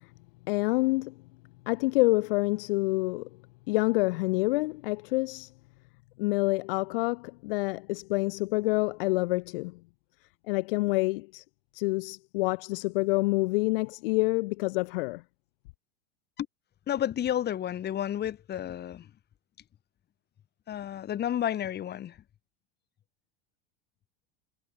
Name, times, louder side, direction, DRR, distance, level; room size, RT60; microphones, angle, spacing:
voice 1, 0.5-1.1 1.7-3.3 3.7-5.5 6.2-9.8 10.5-11.4 11.7-15.2, left 24 dB, 60° left, 1.0 m, -27 dB
voice 2, 16.9-19.1 20.7-22.2, left 11 dB, 30° left, 1.6 m, -31 dB
hypercardioid pair, 85°, 31 cm